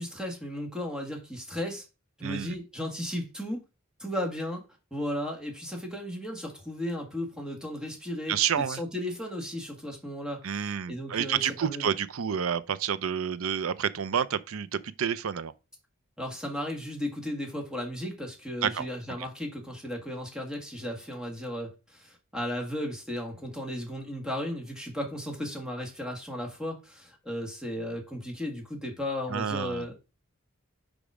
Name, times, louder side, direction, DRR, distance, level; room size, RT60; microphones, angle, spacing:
voice 1, 0.0-1.8 2.2-3.6 4.0-4.6 4.9-11.9 16.2-29.9, left 1 dB, 5° right, 1.7 m, -35 dB
voice 2, 2.2-2.5 8.3-8.8 10.4-15.5 18.6-18.9 29.3-29.8, right 8 dB, 75° right, 0.5 m, -29 dB
5.2 x 4.9 x 4.8 m
head